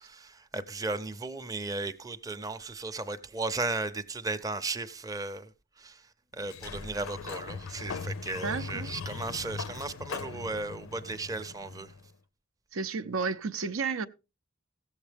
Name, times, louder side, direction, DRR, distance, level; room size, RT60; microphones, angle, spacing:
voice 1, 0.0-5.5 5.8-6.0 6.3-11.9, right 3 dB, 15° right, 0.6 m, -35 dB
Sliding door, 6.4-12.1, left 5 dB, 80° left, 0.5 m, -40 dB
voice 2, 8.4-8.9 12.7-14.1, right 4 dB, 85° right, 0.6 m, -32 dB
16.0 x 7.2 x 3.4 m
head